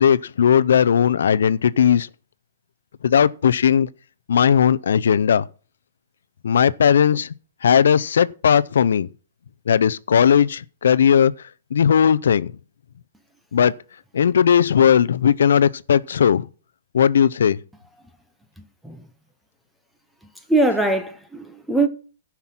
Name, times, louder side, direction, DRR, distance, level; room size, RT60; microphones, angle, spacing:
voice 1, 0.0-2.1 3.0-3.9 4.3-5.4 6.4-7.3 7.6-9.1 9.7-11.3 11.7-12.5 13.5-13.7 14.1-16.4 16.9-17.6, left 8 dB, 85° left, 0.5 m, -17 dB
voice 2, 20.5-21.9, right 2 dB, ahead, 0.8 m, -21 dB
13.5 x 5.9 x 6.0 m
hypercardioid pair, 170°, 0 cm